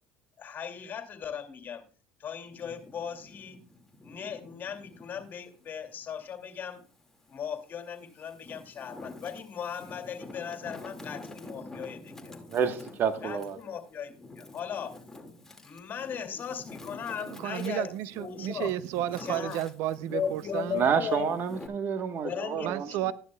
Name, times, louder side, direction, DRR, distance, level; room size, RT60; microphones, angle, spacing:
voice 1, 0.4-1.8 2.2-3.6 4.0-6.8 7.3-12.3 13.2-14.9 15.6-18.7 19.2-19.7 20.0-21.3 22.2-23.1, left 7 dB, 45° left, 6 dB, 2.4 m, -37 dB
Wind, 2.4-5.3 5.8-7.1 7.7-21.7, left 2 dB, 10° left, 2.1 m, -47 dB
voice 2, 12.5-13.6 20.7-22.9, right 7 dB, 50° right, 9 dB, 1.2 m, -28 dB
voice 3, 17.3-20.8 22.6-23.1, right 13 dB, 70° right, 16 dB, 0.5 m, -32 dB
12.5 x 11.0 x 2.3 m, 0.39 s
supercardioid pair, 90°, 5 cm